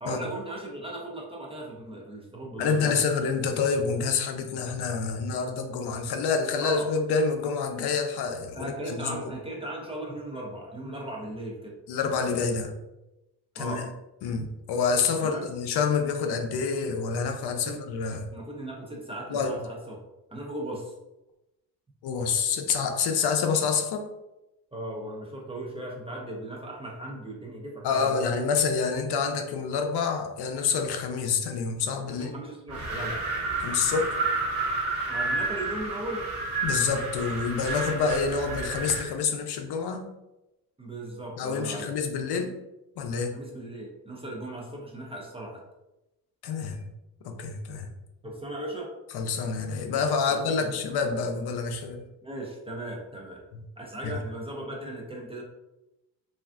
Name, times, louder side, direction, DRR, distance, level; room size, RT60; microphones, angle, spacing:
voice 1, 0.0-3.0 6.6-6.9 8.6-11.7 13.6-13.8 15.2-15.5 17.6-17.8 18.3-20.0 20.3-20.9 24.7-28.2 32.1-33.2 35.1-36.2 40.8-41.9 43.3-45.6 48.2-48.9 50.3-50.8 52.2-53.4 53.8-55.4, right 1 dB, 15° right, -2 dB, 0.4 m, -37 dB
voice 2, 2.6-9.3 11.9-12.7 13.6-13.8 14.2-18.3 19.3-19.6 22.0-24.1 27.8-32.3 33.6-34.2 36.6-40.1 41.4-42.5 43.0-43.4 46.4-46.9 47.2-47.9 49.1-52.0 53.5-53.6 54.0-54.1, left 5 dB, 75° left, 5 dB, 0.5 m, -27 dB
Wind, 32.7-39.1, right 3 dB, 75° right, 1.1 m, -30 dB
3.3 x 2.4 x 2.4 m, 0.96 s
cardioid pair, 140°, 40 cm